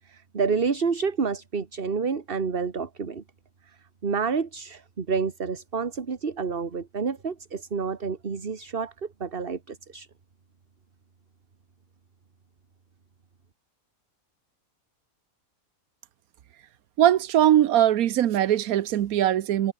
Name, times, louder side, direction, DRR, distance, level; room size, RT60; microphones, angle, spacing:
voice 1, 0.1-3.2 4.0-10.1, right 5 dB, 40° right, 1.6 m, -29 dB
voice 2, 17.0-19.7, right 11 dB, 80° right, 1.3 m, -21 dB
omnidirectional pair, 1.5 m